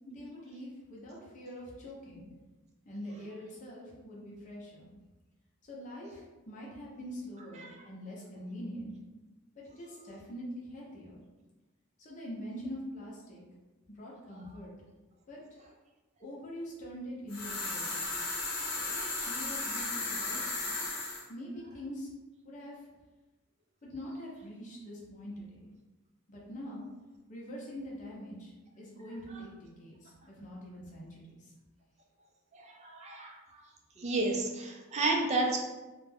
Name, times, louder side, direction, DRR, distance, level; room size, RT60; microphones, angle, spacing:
voice 1, 0.1-2.3 2.8-4.9 5.6-8.9 9.6-11.2 12.0-13.4 13.9-14.7 15.3-15.4 16.2-18.1 18.7-20.7 21.3-22.1 22.4-22.9 23.8-25.7 26.3-26.9 27.3-31.5, equal, 35° left, -4 dB, 0.6 m, -44 dB
sound 1, 17.3-21.2, left 2 dB, 75° left, 0.7 m, -35 dB
voice 2, 32.5-33.6 34.0-35.6, right 2 dB, 30° right, 0 dB, 0.4 m, -31 dB
2.4 x 2.1 x 3.2 m, 1.1 s
head